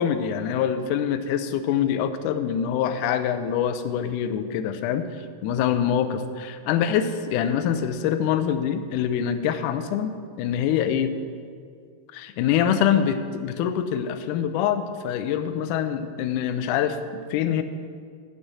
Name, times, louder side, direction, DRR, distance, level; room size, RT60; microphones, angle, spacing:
voice 1, 0.0-5.1 5.4-11.1 12.1-17.6, left 9 dB, 85° left, 9 dB, 1.8 m, -25 dB
8.5 x 6.1 x 7.8 m, 2.1 s
omnidirectional pair, 4.2 m